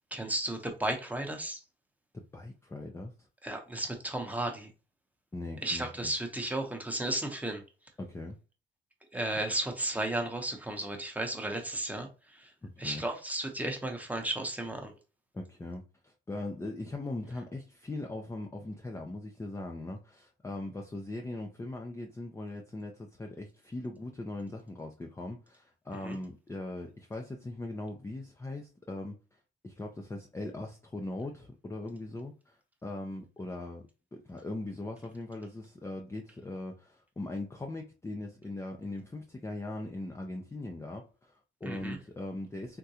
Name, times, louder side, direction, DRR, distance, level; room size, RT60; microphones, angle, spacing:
voice 1, 0.1-1.6 3.4-4.7 5.6-7.6 9.1-12.5 12.8-14.9 26.0-26.2 41.6-42.0, right 1 dB, 10° right, 0.8 m, -34 dB
voice 2, 2.1-3.1 5.3-6.1 8.0-8.4 12.6-13.0 15.3-29.4 29.6-33.8 34.1-42.8, left 2 dB, 15° left, 0.5 m, -40 dB
3.7 x 2.2 x 2.7 m
cardioid pair, 90°, 20 cm